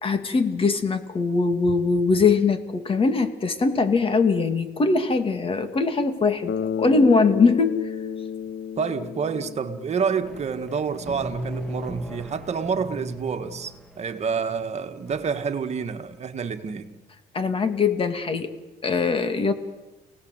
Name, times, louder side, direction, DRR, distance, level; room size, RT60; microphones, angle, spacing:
voice 1, 0.0-7.9 17.3-18.5 18.8-19.5, left 4 dB, 30° left, 2.7 m, -21 dB
Bass guitar, 6.5-10.5, left 7 dB, 75° left, 2.3 m, -31 dB
voice 2, 8.8-16.9, right 6 dB, 40° right, 1.9 m, -28 dB
sound 1, 10.2-15.2, right 1 dB, 5° left, 2.5 m, -37 dB
29.5 x 18.5 x 8.1 m
cardioid pair, 110°, 17 cm